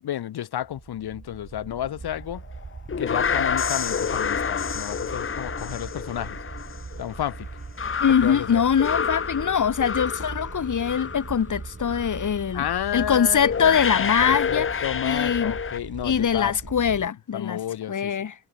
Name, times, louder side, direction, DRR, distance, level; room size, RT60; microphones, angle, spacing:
voice 1, 0.0-2.4 3.0-6.4 7.0-7.5 8.2-8.6 12.5-16.6 17.3-18.1, left 11 dB, 85° left, 0.8 m, -31 dB
sound 1, 0.6-17.1, right 4 dB, 20° right, 0.7 m, -40 dB
sound 2, 2.6-11.5 11.8-12.2 13.0-13.1 13.4-15.8, left 6 dB, 35° left, 0.7 m, -29 dB
voice 2, 8.0-12.7 12.9-15.5 16.0-17.6 17.9-18.3, left 7 dB, 55° left, 1.3 m, -23 dB
wide cardioid pair, 140°, 37 cm